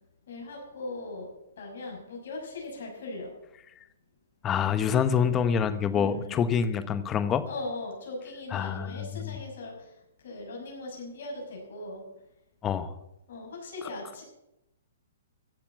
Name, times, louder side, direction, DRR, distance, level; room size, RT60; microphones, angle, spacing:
voice 1, 0.3-1.3 1.6-3.3 5.3-5.6 5.9-6.4 7.5-9.9 10.2-12.0 13.3-14.2, left 2 dB, 65° left, 0 dB, 6.0 m, -39 dB
voice 2, 4.4-7.5 8.5-9.4 12.6-12.9, left 7 dB, 20° left, 13 dB, 1.0 m, -26 dB
15.0 x 7.2 x 8.5 m, 0.88 s
hypercardioid pair, 150°, 0 cm